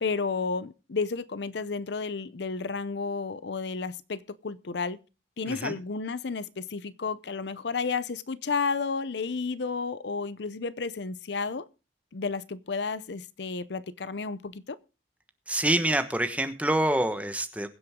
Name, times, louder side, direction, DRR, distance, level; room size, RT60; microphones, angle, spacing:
voice 1, 0.0-5.0 5.4-11.7 12.1-14.8, left 4 dB, 65° left, 0.6 m, -32 dB
voice 2, 5.5-5.8 15.5-17.7, right 1 dB, 5° right, 1.2 m, -26 dB
22.0 x 7.8 x 3.6 m
head